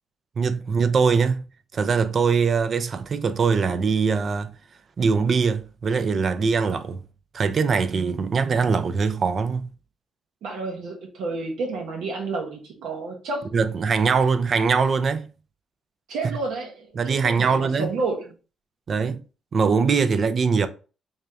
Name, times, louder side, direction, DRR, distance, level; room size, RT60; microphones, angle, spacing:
voice 1, 0.4-1.4 1.7-4.5 5.0-7.0 7.3-9.7 13.5-15.3 17.0-17.9 18.9-19.2 19.5-20.7, right 5 dB, 50° right, 0.4 m, -22 dB
voice 2, 10.4-13.5 16.1-18.3, right 3 dB, 85° right, 0.9 m, -30 dB
3.4 x 2.7 x 3.4 m
cardioid pair, 90°, 0 cm